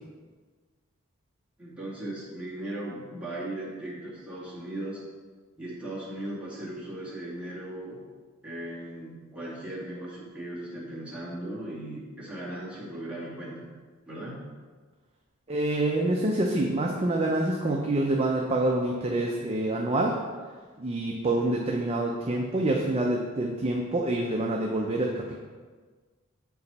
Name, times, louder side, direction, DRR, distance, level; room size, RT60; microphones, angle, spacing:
voice 1, 1.6-5.0 5.6-8.0 8.4-13.7 14.1-14.3, right 1 dB, 5° right, -8 dB, 2.0 m, -37 dB
voice 2, 15.5-20.2 20.8-25.3, right 1 dB, 30° right, -1 dB, 0.6 m, -26 dB
7.7 x 4.7 x 4.1 m, 1.5 s
head